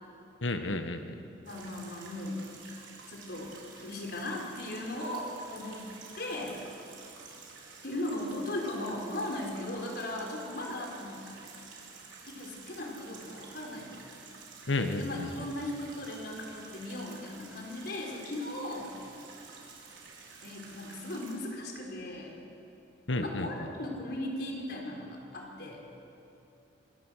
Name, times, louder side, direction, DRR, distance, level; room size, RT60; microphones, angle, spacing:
voice 1, 0.4-1.1 14.7-15.3 23.1-23.5, left 2 dB, 85° left, 7 dB, 1.4 m, -31 dB
voice 2, 1.4-2.4 3.1-5.9 6.2-6.5 7.8-11.2 12.3-14.0 15.0-19.0 20.4-22.4 23.2-25.8, left 1 dB, 60° left, 0 dB, 4.6 m, -37 dB
sound 1, 1.4-21.3, right 4 dB, 75° right, 4.8 m, -50 dB
26.5 x 23.0 x 6.6 m, 2.9 s
head